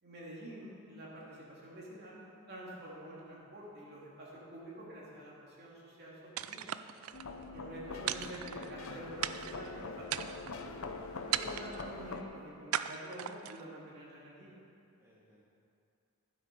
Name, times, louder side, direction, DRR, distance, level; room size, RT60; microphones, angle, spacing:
voice 1, 0.0-2.2 2.5-6.7 7.5-10.8 11.3-14.6, right 1 dB, 50° right, -5 dB, 2.7 m, -48 dB
sound 1, 6.4-7.3 8.1-8.9 9.2-9.7 10.1-10.6 11.3-11.9 12.7-13.6, right 11 dB, 70° right, 0.4 m, -37 dB
voice 2, 7.0-7.6 15.0-15.4, equal, 15° right, -6 dB, 1.3 m, -64 dB
sound 2, 7.1-12.2, left 3 dB, 70° left, 0.8 m, -43 dB
12.5 x 7.9 x 5.4 m, 2.5 s
head